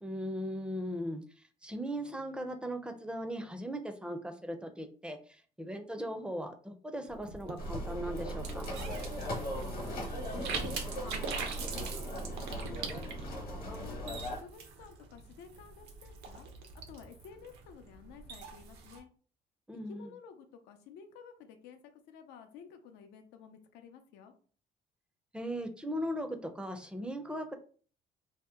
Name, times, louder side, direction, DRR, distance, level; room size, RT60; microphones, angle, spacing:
voice 1, 0.0-8.7 19.7-20.1 25.3-27.5, equal, 5° right, 6 dB, 0.4 m, -38 dB
sound 1, 7.1-19.0, right 5 dB, 80° right, 0.7 m, -43 dB
sound 2, 7.6-14.4, equal, 60° left, 1.0 m, -38 dB
voice 2, 9.4-12.7 13.0-13.4 13.8-16.5 16.9-19.1 19.9-24.3, left 7 dB, 90° left, 7 dB, 0.5 m, -53 dB
2.8 x 2.1 x 3.4 m, 0.42 s
cardioid pair, 110°, 17 cm